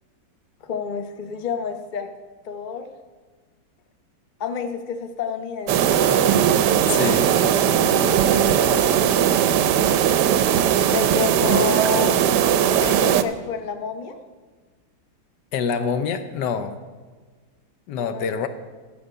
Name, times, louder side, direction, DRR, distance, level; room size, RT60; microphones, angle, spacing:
voice 1, 0.6-2.1 2.4-2.9 4.4-6.2 6.9-8.9 10.9-12.4 12.8-14.2 17.9-18.4, left 6 dB, 55° left, 6 dB, 0.5 m, -30 dB
sound 1, 5.7-13.2, right 9 dB, 70° right, 1.0 m, -19 dB
voice 2, 6.9-7.3 15.5-16.8 17.9-18.5, left 6 dB, 70° left, 9 dB, 1.2 m, -25 dB
13.0 x 7.3 x 5.5 m, 1.4 s
omnidirectional pair, 2.2 m